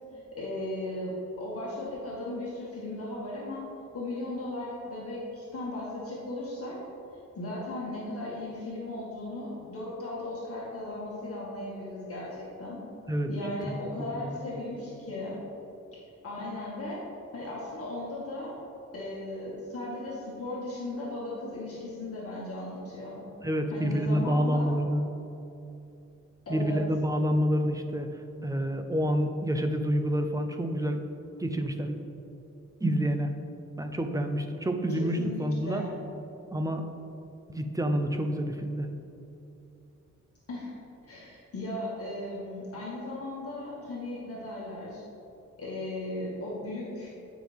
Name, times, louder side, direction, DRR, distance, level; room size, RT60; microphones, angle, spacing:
voice 1, 0.3-3.6 3.9-6.8 7.4-12.8 13.3-15.4 16.2-17.1 17.3-18.6 18.9-23.2 23.7-24.7 26.5-26.8 34.9-36.0 40.5-40.8 41.1-45.0 45.6-47.1, left 1 dB, 50° left, -6 dB, 1.9 m, -36 dB
voice 2, 13.7-14.4 23.4-25.1 26.5-28.1 28.4-31.0 31.4-32.0 32.8-33.3 33.8-35.8 36.5-36.9 37.5-38.9, equal, 10° right, 6 dB, 0.6 m, -28 dB
16.5 x 6.1 x 3.5 m, 2.9 s
wide cardioid pair, 155°, 29 cm